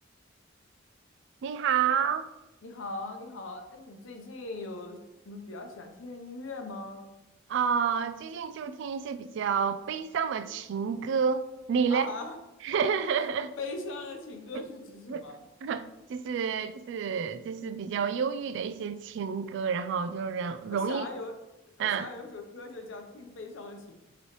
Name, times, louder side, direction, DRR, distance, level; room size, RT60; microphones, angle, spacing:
voice 1, 1.4-2.3 7.5-12.1 12.6-13.5 15.1-15.3 15.6-21.1 21.8-22.1, right 6 dB, 65° right, 0.3 m, -29 dB
voice 2, 2.6-5.0 5.2-7.1 11.9-12.4 12.8-13.3 13.6-15.4 20.7-21.4 21.8-24.0, left 3 dB, 75° left, 0.7 m, -40 dB
5.5 x 3.1 x 3.0 m
head